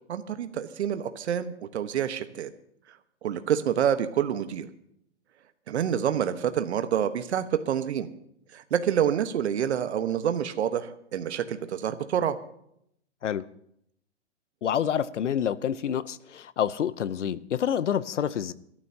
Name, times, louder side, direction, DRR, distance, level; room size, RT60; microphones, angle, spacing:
voice 1, 0.1-2.5 3.2-4.7 5.7-8.1 8.5-12.4, right 9 dB, 65° right, 1.3 m, -27 dB
voice 2, 14.6-18.5, left 9 dB, 80° left, 0.9 m, -28 dB
24.5 x 13.5 x 2.9 m
hypercardioid pair, 135°, 36 cm